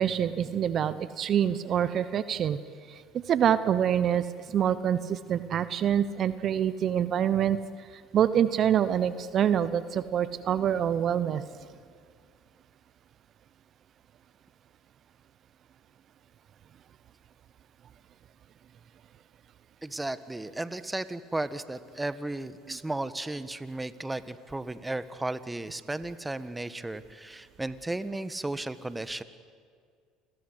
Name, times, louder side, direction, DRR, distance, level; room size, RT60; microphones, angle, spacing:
voice 1, 0.0-2.6 3.1-4.2 4.5-7.6 8.1-11.4, right 9 dB, 50° right, 15 dB, 1.0 m, -26 dB
voice 2, 19.8-29.2, right 2 dB, 10° right, 14 dB, 1.3 m, -34 dB
29.5 x 21.5 x 8.1 m, 2.1 s
hypercardioid pair, 70°, 0 cm